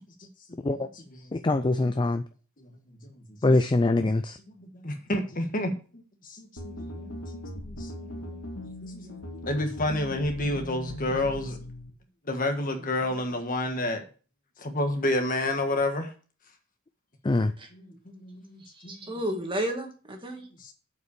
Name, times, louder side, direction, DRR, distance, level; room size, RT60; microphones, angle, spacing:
voice 1, 1.3-2.2 3.4-4.4 17.2-17.5, left 2 dB, 20° left, 0.4 m, -23 dB
voice 2, 2.6-3.2 4.6-8.4 8.6-11.6 12.2-14.0 14.6-16.1 17.7-19.1 20.6-20.7, left 1 dB, 40° left, 1.5 m, -30 dB
sound 1, 6.6-11.9, left 1 dB, 85° left, 2.1 m, -39 dB
voice 3, 18.6-20.5, equal, 25° right, 1.8 m, -32 dB
7.8 x 5.5 x 6.8 m
head